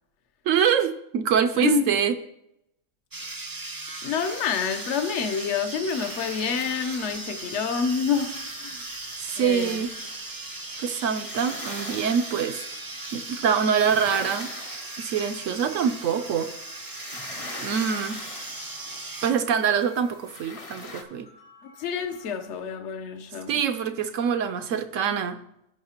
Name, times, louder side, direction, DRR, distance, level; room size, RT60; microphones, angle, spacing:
voice 1, 0.5-2.1 9.2-9.9 10.8-12.6 13.1-14.5 15.0-16.5 17.6-18.3 19.2-21.3 23.5-25.4, right 7 dB, 70° right, 0.9 m, -25 dB
voice 2, 1.5-1.9 4.0-8.8 9.4-9.8 21.8-23.6, left 6 dB, 60° left, 1.0 m, -28 dB
sound 1, 3.1-19.3, right 2 dB, 25° right, 0.5 m, -37 dB
sound 2, 4.2-21.0, left 3 dB, 35° left, 0.7 m, -44 dB
sound 3, 11.8-22.6, left 1 dB, 85° left, 3.6 m, -53 dB
17.0 x 5.7 x 2.9 m
omnidirectional pair, 1.5 m